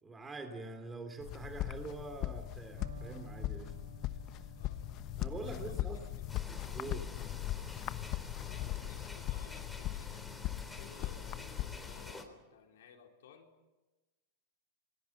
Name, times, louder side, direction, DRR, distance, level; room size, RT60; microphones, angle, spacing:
voice 1, 0.0-3.7 5.2-6.0 6.7-7.1, right 2 dB, 15° right, 2.7 m, -44 dB
sound 1, 1.2-12.1, left 14 dB, 40° left, 1.1 m, -39 dB
Electric guitar, 2.8-10.6, right 7 dB, 80° right, 3.5 m, -57 dB
voice 2, 4.5-4.8 5.5-6.3 7.0-7.3 8.4-13.5, left 7 dB, 75° left, 3.9 m, -58 dB
sound 2, 6.3-12.2, left 2 dB, 5° left, 3.8 m, -49 dB
26.5 x 20.5 x 7.2 m
hypercardioid pair, 115°, 0 cm